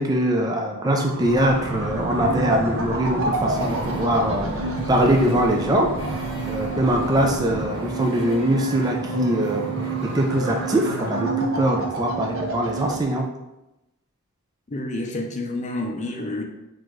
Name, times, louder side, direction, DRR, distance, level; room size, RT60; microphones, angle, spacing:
voice 1, 0.0-13.3, right 1 dB, 20° right, 1 dB, 0.3 m, -23 dB
sound 1, 0.8-13.0, right 4 dB, 80° right, 0.8 m, -30 dB
sound 2, 1.2-7.7, equal, 60° left, 0.9 m, -33 dB
Wind / Ocean, 3.4-11.3, equal, 55° right, 1.5 m, -36 dB
voice 2, 14.7-16.4, left 2 dB, 35° left, 3 dB, 0.5 m, -29 dB
6.1 x 2.5 x 3.0 m, 0.95 s
head